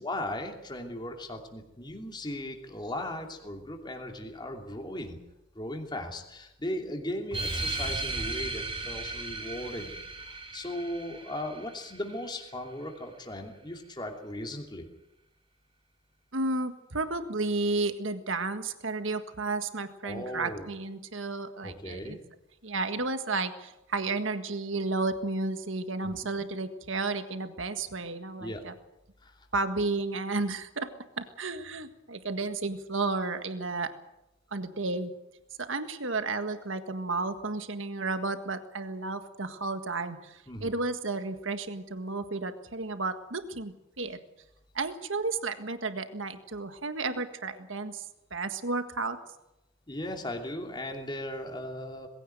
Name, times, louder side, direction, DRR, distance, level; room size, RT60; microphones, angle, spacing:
voice 1, 0.0-5.2 5.5-14.9 20.0-20.7 21.6-22.2 26.0-26.2 28.4-28.6 29.2-29.5 40.5-40.7 49.9-52.1, left 1 dB, 20° left, 3 dB, 2.8 m, -37 dB
sound 1, 7.3-12.3, right 2 dB, 25° right, 3.2 m, -36 dB
voice 2, 16.3-22.2 22.6-28.7 29.5-30.9 31.2-33.9 34.5-35.1 35.6-44.2 44.7-49.2, right 3 dB, 70° right, 9 dB, 1.7 m, -32 dB
21.0 x 16.0 x 9.2 m, 0.90 s
head